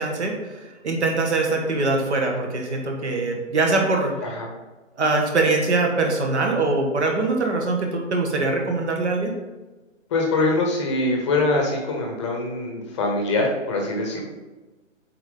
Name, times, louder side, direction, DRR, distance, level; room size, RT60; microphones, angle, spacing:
voice 1, 0.0-4.1 5.0-9.3, right 3 dB, 60° right, 2 dB, 1.7 m, -23 dB
voice 2, 10.1-14.2, left 2 dB, 25° left, 1 dB, 0.9 m, -23 dB
7.6 x 4.3 x 3.8 m, 1.2 s
figure-of-eight pair, 145°, 38 cm